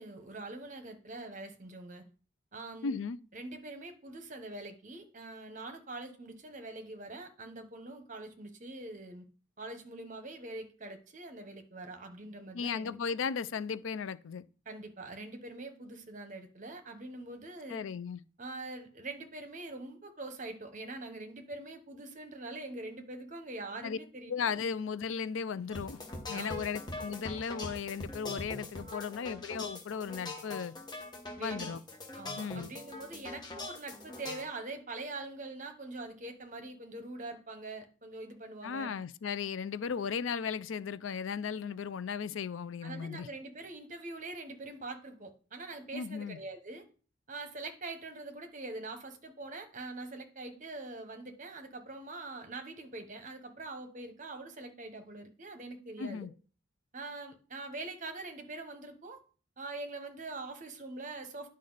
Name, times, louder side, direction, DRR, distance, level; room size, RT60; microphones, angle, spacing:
voice 1, 0.0-2.0 2.5-3.0 3.3-9.2 9.6-13.0 14.7-17.9 18.4-24.3 26.3-26.6 28.8-28.9 31.4-31.7 32.1-38.9 42.8-46.8 47.3-56.3 56.9-59.2 59.6-61.5, right 2 dB, 40° right, 1.1 m, -44 dB
voice 2, 2.8-3.2 12.5-14.4 17.7-18.2 23.8-24.0 24.3-26.0 26.3-30.7 31.4-31.8 32.4-32.7 38.6-43.3 45.9-46.4 56.0-56.3, left 6 dB, 75° left, 0.4 m, -36 dB
sound 1, 25.7-34.4, left 2 dB, 20° left, 1.4 m, -42 dB
10.0 x 5.3 x 4.0 m
head